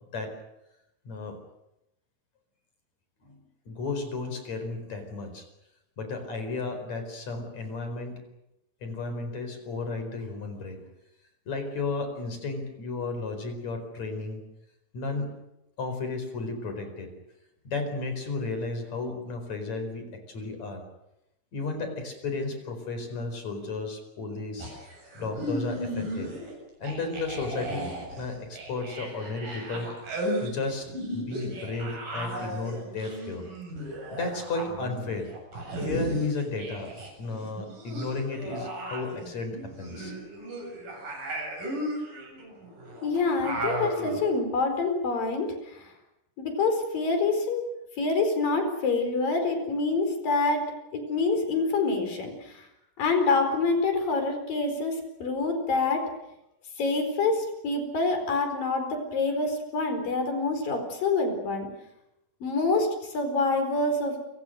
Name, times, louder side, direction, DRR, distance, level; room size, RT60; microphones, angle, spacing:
voice 1, 1.1-1.4 3.2-3.4 3.7-5.5 6.0-8.2 8.8-10.9 11.5-14.4 14.9-15.3 15.8-17.1 17.6-20.8 21.5-24.7 25.1-26.3 26.8-27.9 28.2-29.9 30.4-33.5 34.1-35.3 35.8-36.9 37.2-40.1, left 3 dB, 50° left, 7 dB, 5.8 m, -33 dB
sound 1, 24.6-26.5 26.8-37.1 37.4-44.2, equal, 70° right, 9.1 m, -35 dB
voice 2, 43.0-45.9 46.4-47.7 48.0-50.6 50.9-52.6 53.0-55.0 55.2-56.0 56.8-61.7 62.4-64.2, left 3 dB, 75° left, 6 dB, 6.3 m, -26 dB
29.0 x 25.5 x 6.6 m, 0.87 s
omnidirectional pair, 4.0 m